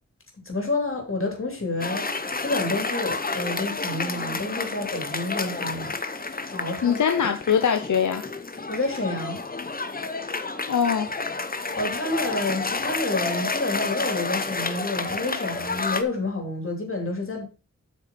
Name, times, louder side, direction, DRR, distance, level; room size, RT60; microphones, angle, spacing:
voice 1, 0.4-7.2 8.7-9.4 11.7-17.4, left 2 dB, 45° left, 3.2 m, -29 dB
Cheering / Applause, 1.8-16.0, left 3 dB, 30° left, 0.9 m, -30 dB
voice 2, 6.8-8.2 10.7-11.1, left 7 dB, 80° left, 0.7 m, -22 dB
7.8 x 6.1 x 4.2 m
cardioid pair, 55°, 29 cm